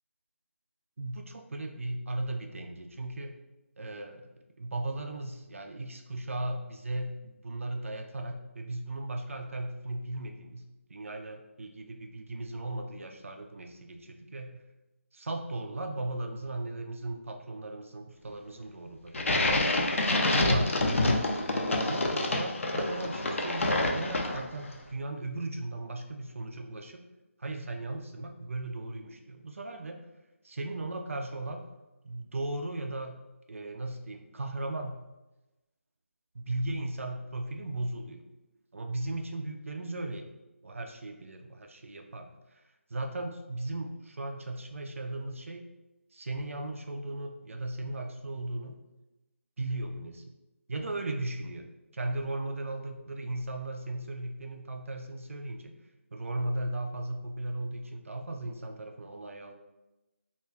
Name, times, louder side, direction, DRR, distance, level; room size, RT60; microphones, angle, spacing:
voice 1, 1.0-3.3 3.8-4.3 4.6-14.6 15.1-19.4 20.1-21.0 21.5-27.0 27.4-30.0 30.4-31.6 32.0-33.2 33.5-35.0 36.3-38.2 38.7-40.3 40.6-42.6 42.9-45.6 46.1-48.8 49.6-50.2 50.7-55.7 56.1-59.5, right 2 dB, 65° right, 4 dB, 0.3 m, -37 dB
sound 1, 19.1-24.6, left 2 dB, 65° left, 0.5 m, -27 dB
2.5 x 2.2 x 3.1 m, 1.0 s
figure-of-eight pair, 160°, 8 cm